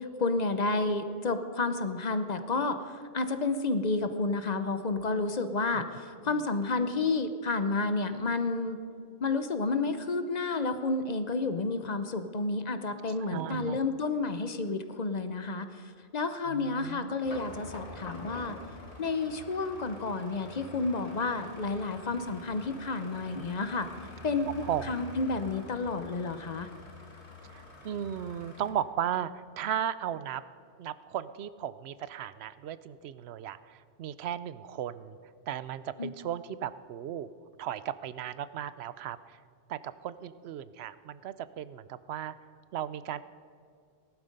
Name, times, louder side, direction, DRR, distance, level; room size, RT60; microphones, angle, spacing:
voice 1, 0.2-8.8 9.2-15.7 16.1-18.6 19.0-23.9 24.2-24.5 24.9-26.7 36.0-36.1, left 3 dB, 45° left, 9 dB, 0.8 m, -30 dB
voice 2, 13.2-13.8 16.5-17.1 24.6-24.9 27.5-30.4 30.8-35.2 35.5-37.3 37.6-39.4 39.7-42.4 42.7-43.2, right 10 dB, 75° right, 15 dB, 0.8 m, -36 dB
sound 1, 17.3-28.7, left 2 dB, 85° left, 2.1 m, -47 dB
18.0 x 11.5 x 5.2 m, 2.3 s
omnidirectional pair, 1.1 m